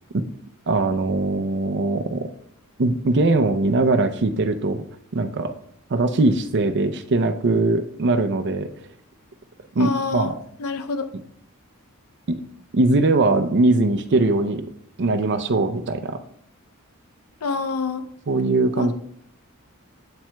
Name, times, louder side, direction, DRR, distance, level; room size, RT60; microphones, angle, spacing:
voice 1, 0.7-2.3 2.8-4.8 5.1-5.5 5.9-8.7 9.7-10.4 12.7-14.6 15.0-16.2 18.3-18.9, right 2 dB, 55° right, 9 dB, 0.6 m, -21 dB
voice 2, 9.8-10.3 10.6-11.1 17.4-18.0 18.7-18.9, left 4 dB, 75° left, 10 dB, 0.6 m, -26 dB
8.5 x 7.4 x 2.2 m, 0.68 s
head